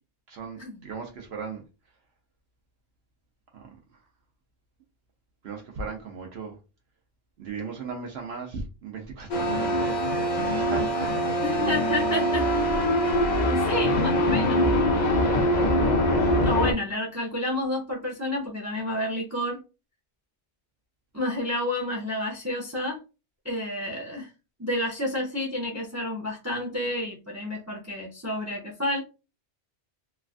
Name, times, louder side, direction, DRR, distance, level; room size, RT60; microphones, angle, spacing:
voice 1, 0.3-1.6 3.5-4.0 5.4-6.6 7.4-11.3 12.1-12.2, right 5 dB, 65° right, 0.8 m, -37 dB
sound 1, 9.3-16.7, equal, 45° left, 0.7 m, -23 dB
voice 2, 11.4-12.9 13.4-14.7 16.4-19.6 21.1-23.0 23.4-24.3 24.6-29.0, left 1 dB, 20° right, 0.5 m, -30 dB
3.2 x 2.3 x 2.4 m
omnidirectional pair, 1.2 m